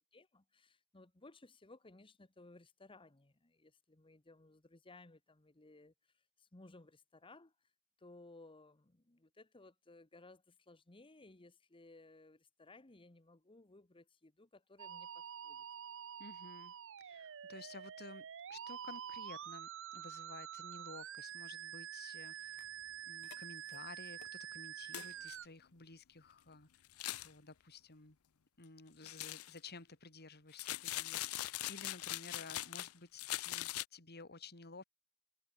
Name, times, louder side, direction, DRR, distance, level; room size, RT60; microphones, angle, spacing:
voice 1, 0.1-5.9 6.4-7.5 8.0-15.6, left 2 dB, 25° left, 1.2 m, -60 dB
Musical instrument, 14.8-25.5, right 10 dB, 60° right, 0.6 m, -48 dB
voice 2, 16.2-22.7 23.0-26.7 27.0-28.2 28.6-34.8, left 3 dB, 50° left, 3.3 m, -54 dB
sound 1, 22.6-22.7 23.2-23.4 23.7-23.8 24.2-24.3 24.9-25.4 26.8-27.3 29.0-29.6 30.5-32.9 33.2-33.8, left 15 dB, 85° left, 0.6 m, -41 dB
head